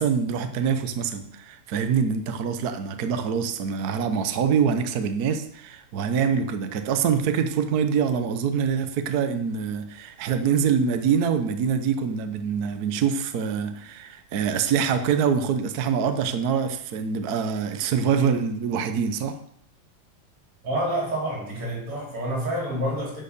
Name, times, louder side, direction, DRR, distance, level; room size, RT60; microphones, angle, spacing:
voice 1, 0.0-19.4, right 7 dB, 55° right, 8 dB, 1.2 m, -25 dB
voice 2, 20.6-23.2, right 1 dB, 90° right, -4 dB, 5.6 m, -28 dB
11.0 x 6.4 x 6.7 m, 0.68 s
omnidirectional pair, 2.4 m